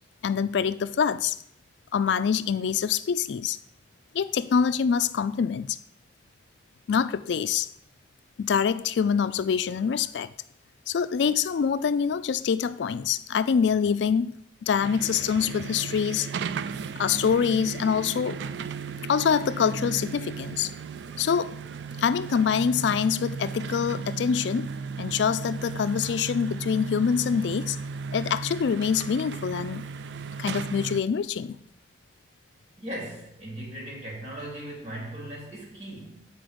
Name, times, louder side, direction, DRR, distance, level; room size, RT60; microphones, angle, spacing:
voice 1, 0.2-1.4 1.9-3.6 4.1-5.8 6.9-7.7 8.4-10.3 10.9-16.3 17.0-18.4 19.1-20.7 21.2-21.6 22.0-24.7 25.0-27.8 28.1-29.8 30.4-31.6, left 7 dB, 75° left, 13 dB, 0.4 m, -25 dB
sound 1, 14.8-31.0, right 5 dB, 75° right, 0.3 m, -35 dB
voice 2, 32.8-36.2, right 1 dB, 40° right, -2 dB, 2.5 m, -38 dB
7.8 x 4.5 x 5.0 m, 0.70 s
head